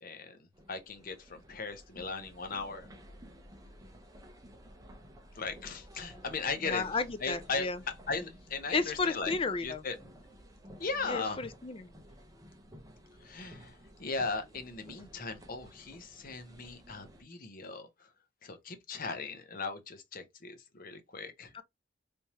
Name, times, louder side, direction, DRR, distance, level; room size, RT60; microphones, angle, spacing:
voice 1, 0.0-2.9 5.3-6.8 7.2-7.7 8.1-9.3 9.6-9.9 10.8-11.4 13.2-18.1 18.4-21.5, left 4 dB, 50° left, 0.8 m, -38 dB
sound 1, 0.5-17.2, equal, 20° right, 0.7 m, -53 dB
voice 2, 6.6-7.8 8.7-9.8 11.1-11.9 21.5-21.6, left 4 dB, 30° left, 0.4 m, -33 dB
3.4 x 2.9 x 2.9 m
head